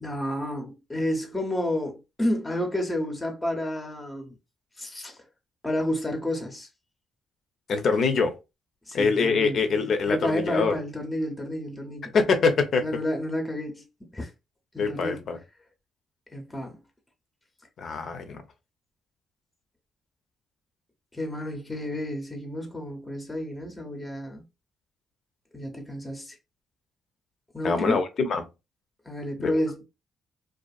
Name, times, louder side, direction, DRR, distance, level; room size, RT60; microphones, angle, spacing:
voice 1, 0.0-4.3 4.8-5.2 5.6-6.7 8.9-9.6 10.1-12.1 12.8-13.8 14.1-14.3 14.7-15.2 16.3-16.8 21.1-24.4 25.5-26.4 27.5-28.0 29.0-29.8, left 1 dB, 15° left, 0.7 m, -30 dB
voice 2, 7.7-8.4 8.9-10.8 12.1-12.8 14.8-15.4 17.8-18.4 27.6-28.4 29.4-29.6, left 4 dB, 60° left, 0.6 m, -24 dB
2.6 x 2.4 x 2.3 m
cardioid pair, 90°, 0 cm